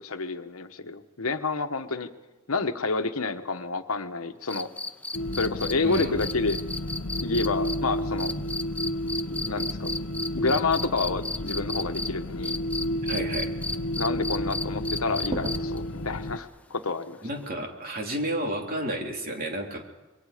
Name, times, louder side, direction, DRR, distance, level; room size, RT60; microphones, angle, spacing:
voice 1, 0.0-2.1 2.5-4.7 5.4-6.6 7.2-8.3 9.3-9.9 10.3-12.6 13.9-17.2, left 3 dB, 80° left, 8 dB, 1.2 m, -29 dB
sound 1, 4.5-12.1 12.4-15.8 17.4-17.5, left 2 dB, 5° left, 0.7 m, -33 dB
sound 2, 5.1-16.4, equal, 65° left, 0.9 m, -32 dB
voice 2, 5.8-6.3 13.0-13.5 17.2-19.8, right 1 dB, 45° right, 1 dB, 3.2 m, -31 dB
sound 3, 15.3-15.9, equal, 25° right, 3.3 m, -43 dB
26.5 x 22.5 x 5.1 m, 1.1 s
head